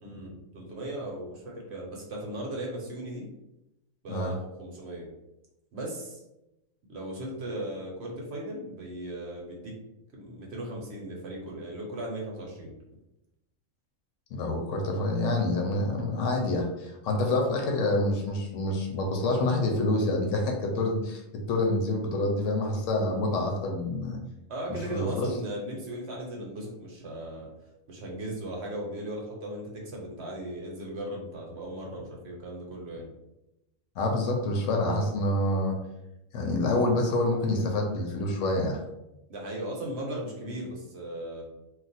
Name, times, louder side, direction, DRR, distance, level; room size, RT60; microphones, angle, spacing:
voice 1, 0.0-3.2 4.0-5.1 5.7-6.2 6.9-9.7 10.1-12.7 24.5-27.5 27.9-33.1 39.3-41.4, right 1 dB, 55° right, -2 dB, 0.9 m, -37 dB
voice 2, 14.3-21.2 21.5-24.2 24.7-25.3 34.0-35.7 36.3-38.8, left 2 dB, 70° left, 1 dB, 0.9 m, -27 dB
2.4 x 2.3 x 4.0 m, 0.91 s
omnidirectional pair, 1.4 m